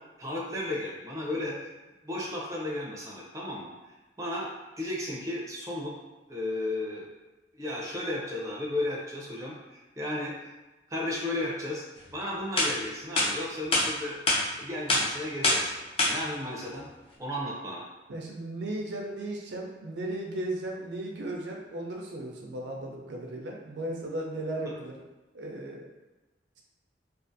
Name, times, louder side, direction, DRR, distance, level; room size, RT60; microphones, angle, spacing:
voice 1, 0.2-1.7 2.0-3.7 4.2-5.9 6.3-7.1 7.5-10.5 10.9-11.8 12.1-14.2 14.6-15.8 16.0-16.9 17.2-17.8, left 1 dB, 20° right, -4 dB, 0.5 m, -34 dB
sound 1, 12.1-12.2 12.6-12.7 13.2-13.3 13.7-13.9 14.3-14.4 14.9-15.0 15.4-15.6 16.0-16.1, left 2 dB, 35° left, 0.5 m, -23 dB
voice 2, 18.1-25.0 25.3-25.9, right 1 dB, 80° right, 0 dB, 0.5 m, -36 dB
2.5 x 2.4 x 2.5 m, 1.1 s
head